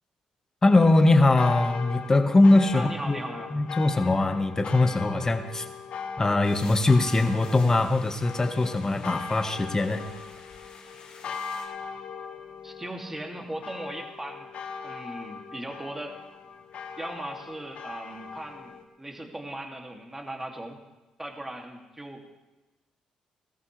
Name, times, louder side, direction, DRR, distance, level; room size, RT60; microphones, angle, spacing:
sound 1, 0.6-18.8, left 6 dB, 65° left, 1.4 m, -39 dB
voice 1, 0.6-3.2 3.5-5.6 6.2-10.0, left 2 dB, 25° left, 5 dB, 1.7 m, -21 dB
voice 2, 2.7-3.5 12.6-14.5 14.8-16.2 17.0-20.8 21.2-22.3, right 1 dB, 15° right, 1 dB, 2.7 m, -38 dB
sound 2, 6.4-11.7, left 5 dB, 85° left, 3.5 m, -49 dB
21.0 x 14.0 x 3.4 m, 1.1 s
supercardioid pair, 70°, 2 cm